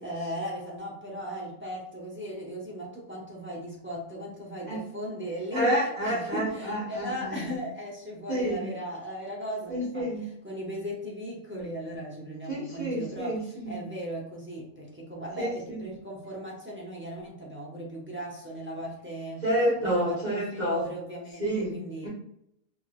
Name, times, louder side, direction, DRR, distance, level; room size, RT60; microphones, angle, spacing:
voice 1, 0.0-5.7 6.0-10.1 10.4-19.4 19.8-22.1, equal, 15° right, -3 dB, 0.5 m, -37 dB
voice 2, 5.5-7.6 8.3-8.6 9.7-10.3 12.5-13.8 15.4-15.8 19.4-20.8 21.4-21.7 22.0-22.1, equal, 30° right, -7 dB, 1.2 m, -29 dB
3.8 x 2.9 x 2.5 m, 0.75 s
omnidirectional pair, 1.5 m